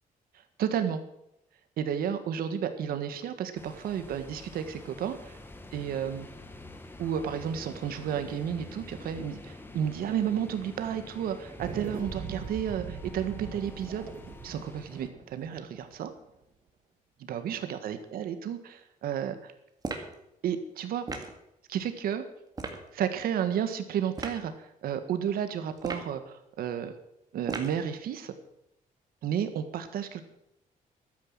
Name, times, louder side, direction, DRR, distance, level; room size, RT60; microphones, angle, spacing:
voice 1, 0.6-1.0 1.8-5.4 5.7-6.3 7.0-14.0 14.4-16.1 17.2-19.5 20.4-21.0 21.7-22.2 22.9-26.9 27.3-28.3 29.2-30.2, right 9 dB, 80° right, 9 dB, 1.7 m, -32 dB
sound 1, 3.6-15.1, left 2 dB, 15° left, 1.5 m, -47 dB
sound 2, 11.6-16.2, right 6 dB, 60° right, 2.1 m, -41 dB
sound 3, 19.8-20.2 21.1-21.4 22.5-22.8 24.1-24.4 25.8-26.2 27.5-27.8, right 3 dB, 25° right, 2.0 m, -36 dB
12.5 x 9.6 x 7.4 m, 0.82 s
cardioid pair, 140°, 15 cm